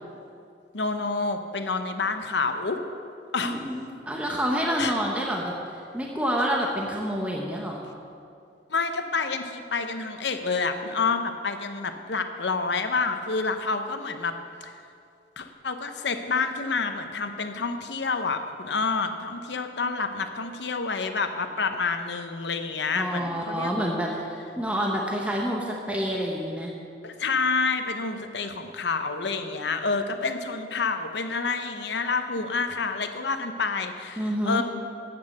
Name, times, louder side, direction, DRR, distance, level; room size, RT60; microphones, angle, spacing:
voice 1, 0.7-2.8 3.3-3.6 4.8-4.9 8.7-14.3 14.6-14.7 15.4-23.7 27.0-34.6, left 4 dB, 75° left, 7 dB, 0.8 m, -28 dB
voice 2, 3.4-5.5 5.9-7.8 22.9-26.7 34.2-34.6, equal, 5° right, -1 dB, 1.0 m, -28 dB
10.5 x 8.7 x 6.6 m, 2.5 s
head